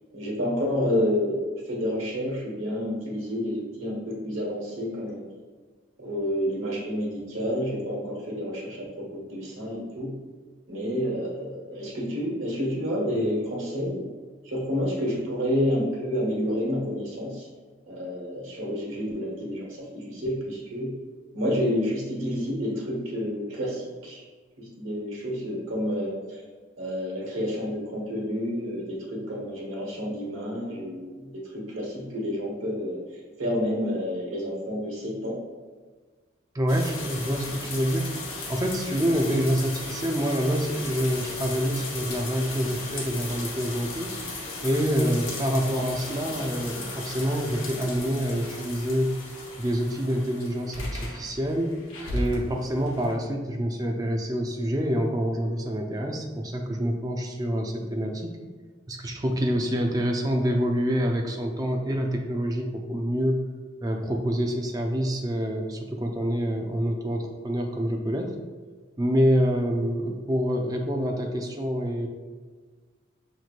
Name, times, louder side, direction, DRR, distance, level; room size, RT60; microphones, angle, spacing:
voice 1, 0.1-5.2 6.0-10.2 10.7-14.1 14.4-17.5 17.9-21.0 21.3-24.2 24.6-26.4 26.8-33.0 33.4-35.4, equal, 90° right, -3 dB, 1.2 m, -29 dB
voice 2, 36.5-38.1 38.5-44.1 44.6-49.2 49.6-51.8 52.1-58.4 58.9-63.4 63.8-68.3 69.0-72.1, equal, 20° right, 2 dB, 0.4 m, -26 dB
sound 1, 36.7-53.1, left 2 dB, 85° left, 0.9 m, -36 dB
5.6 x 3.2 x 2.4 m, 1.4 s
head